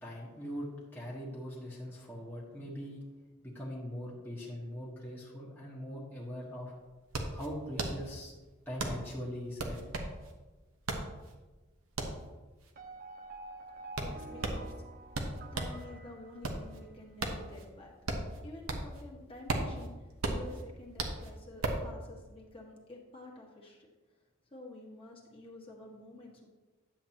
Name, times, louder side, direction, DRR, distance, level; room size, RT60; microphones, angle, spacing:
voice 1, 0.0-3.1 3.4-6.7 7.3-8.3 8.7-9.8, equal, 10° left, -7 dB, 1.4 m, -41 dB
sound 1, 6.2-6.3 6.5-15.8 16.2-19.0 19.3-21.9, right 2 dB, 80° right, 1.0 m, -36 dB
sound 2, 12.8-17.1, right 2 dB, 45° right, 0.7 m, -48 dB
voice 2, 14.0-14.7 15.5-17.9 18.4-23.9 24.5-26.5, left 2 dB, 25° left, -3 dB, 1.6 m, -50 dB
10.0 x 7.7 x 3.0 m, 1.2 s
head